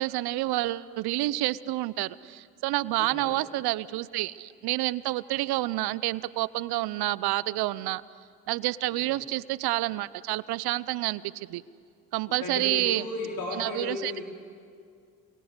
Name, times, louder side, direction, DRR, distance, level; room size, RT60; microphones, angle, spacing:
voice 1, 0.0-8.0 8.5-11.6 12.1-13.0 13.5-14.2, right 17 dB, 75° right, 19 dB, 0.8 m, -29 dB
voice 2, 3.0-3.3 12.4-14.2, left 2 dB, 60° left, -2 dB, 4.1 m, -34 dB
29.0 x 23.0 x 8.1 m, 2.2 s
hypercardioid pair, 50°, 38 cm